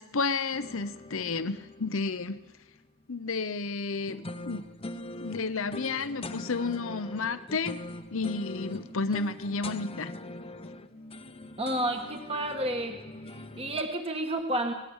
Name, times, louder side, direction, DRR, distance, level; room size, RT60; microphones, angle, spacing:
voice 1, 0.0-2.4 3.1-4.6 5.2-7.8 8.1-10.1, left 4 dB, 65° left, 12 dB, 0.9 m, -31 dB
sound 1, 0.5-2.9 4.1-13.8, left 1 dB, 25° left, 1.0 m, -42 dB
voice 2, 11.6-12.9 13.3-14.7, right 1 dB, 25° right, 4 dB, 1.7 m, -30 dB
25.5 x 19.0 x 7.3 m, 1.1 s
head